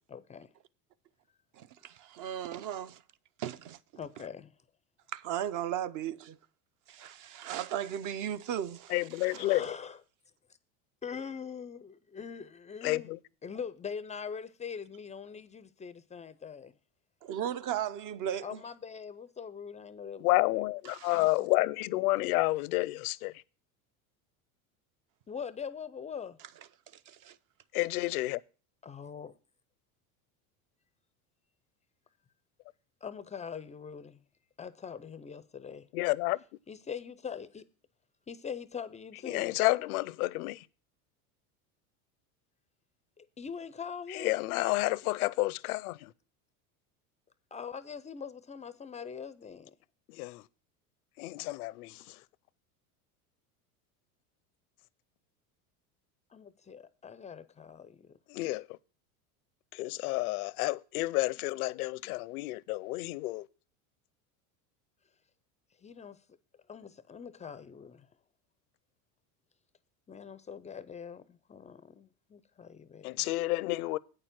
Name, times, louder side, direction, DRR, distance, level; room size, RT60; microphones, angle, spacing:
voice 1, 0.1-0.5 4.0-4.5 9.3-10.0 11.0-13.1 13.4-16.7 18.4-20.6 21.1-21.5 25.3-26.4 28.8-29.3 33.0-34.2 34.6-35.9 36.7-37.7 38.3-39.5 43.2-44.3 47.5-49.7 56.3-58.2 65.8-66.2 66.7-68.1 70.1-73.2, left 6 dB, 15° left, 0.4 m, -42 dB
voice 2, 1.5-3.0 3.4-3.8 5.1-6.4 6.9-9.4 17.3-18.6 20.9-21.2 26.9-27.4, right 10 dB, 45° right, 0.6 m, -36 dB
voice 3, 8.9-9.6 12.8-13.2 20.2-23.3 27.7-28.4 35.9-36.4 39.2-40.7 44.1-46.1 50.1-50.4 51.2-52.2 58.3-58.8 59.7-63.5 73.0-74.0, left 20 dB, 80° left, 0.6 m, -30 dB
8.7 x 6.8 x 5.8 m
supercardioid pair, 100°, 44 cm